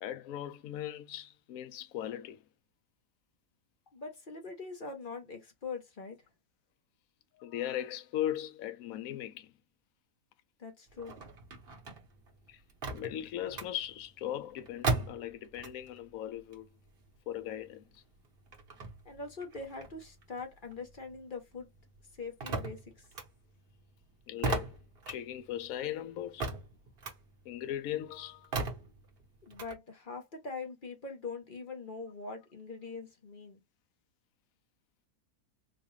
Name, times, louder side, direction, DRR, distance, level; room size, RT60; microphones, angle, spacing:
voice 1, 0.0-2.4 7.3-9.5 12.5-12.6 12.9-16.7 17.3-18.0 22.5-22.6 24.3-24.8 25.1-26.5 27.5-28.5, left 11 dB, 70° left, 1.0 m, -38 dB
voice 2, 3.9-6.2 10.6-11.2 19.0-21.7 22.2-23.1 29.5-33.6, left 4 dB, 40° left, 1.0 m, -43 dB
sound 1, 10.9-16.0 16.3-21.2 21.5-29.7, right 3 dB, 45° right, 1.1 m, -39 dB
4.0 x 2.4 x 3.1 m
omnidirectional pair, 1.6 m